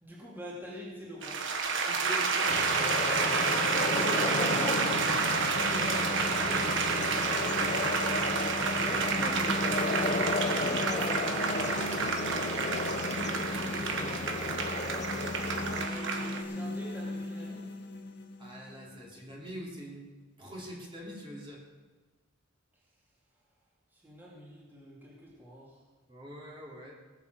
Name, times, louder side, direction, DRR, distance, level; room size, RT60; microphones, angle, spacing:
voice 1, 0.0-1.4 4.0-5.2 8.8-12.0 15.6-17.7 23.9-25.8, equal, 10° right, -6 dB, 3.0 m, -43 dB
sound 1, 1.2-16.4, right 4 dB, 65° right, 1.4 m, -30 dB
voice 2, 1.8-4.1 5.3-7.9 8.6-8.9 9.2-9.3 13.7-14.8 18.4-20.1 20.4-21.6 26.1-27.0, equal, 25° right, -3 dB, 3.2 m, -45 dB
sound 2, 2.5-15.9, left 3 dB, 35° left, 0.7 m, -34 dB
sound 3, 3.6-19.6, left 1 dB, 60° left, 1.6 m, -40 dB
19.0 x 7.4 x 6.9 m, 1.3 s
head